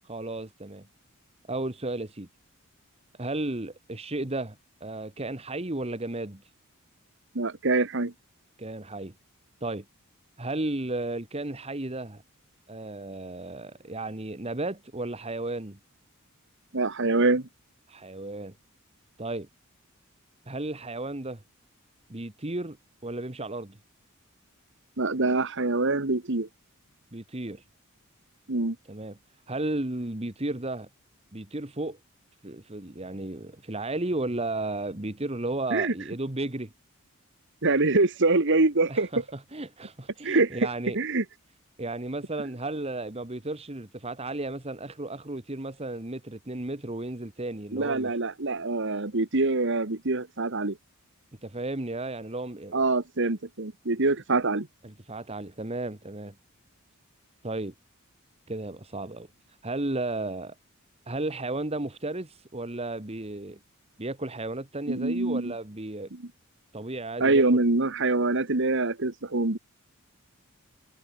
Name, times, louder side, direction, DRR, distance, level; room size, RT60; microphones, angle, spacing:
voice 1, 0.0-0.9 1.5-2.3 3.2-6.4 8.6-9.1 9.6-9.8 10.4-12.2 12.7-15.8 17.9-18.5 19.2-19.5 20.5-21.4 22.1-22.8 23.0-23.8 27.1-27.6 28.9-29.2 29.5-30.9 31.3-32.0 32.4-36.7 38.9-41.0 41.8-48.2 51.4-52.8 54.8-56.3 57.4-57.7 58.5-59.3 59.6-60.5 61.1-63.6 64.0-66.1 66.7-67.4, right 2 dB, 30° right, 1.6 m, -34 dB
voice 2, 7.3-8.1 16.7-17.5 25.0-26.5 28.5-28.8 35.7-35.9 37.6-39.1 40.2-40.7 40.9-41.2 47.7-50.8 52.7-54.7 64.9-65.5 66.1-66.2 67.2-69.6, right 3 dB, 55° right, 1.5 m, -25 dB
head